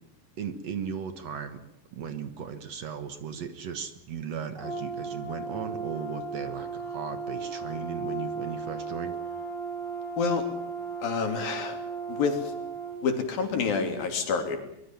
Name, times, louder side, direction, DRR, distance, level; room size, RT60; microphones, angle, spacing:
voice 1, 0.4-1.6 1.9-9.2, right 7 dB, 55° right, 10 dB, 2.3 m, -36 dB
Brass instrument, 4.6-13.0, right 4 dB, ahead, 7.3 m, -36 dB
voice 2, 11.0-11.8 12.1-12.4 13.0-14.6, left 5 dB, 85° left, 6 dB, 4.9 m, -27 dB
24.5 x 21.5 x 7.4 m, 0.79 s
omnidirectional pair, 4.0 m